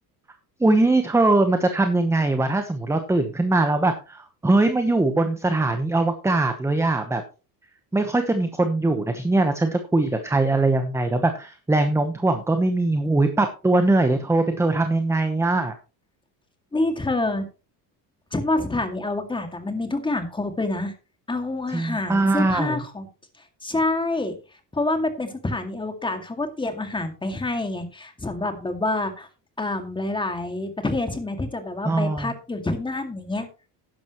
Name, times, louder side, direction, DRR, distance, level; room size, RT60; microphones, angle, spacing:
voice 1, 0.6-7.2 7.9-15.7 21.7-22.8 31.8-32.3, right 2 dB, 5° right, 7 dB, 1.0 m, -21 dB
voice 2, 16.7-17.5 18.3-20.9 21.3-23.1 23.6-24.3 24.7-29.3 29.6-33.5, left 2 dB, 10° left, 6 dB, 2.1 m, -27 dB
12.5 x 10.5 x 3.0 m, 0.32 s
cardioid pair, 130°, 42 cm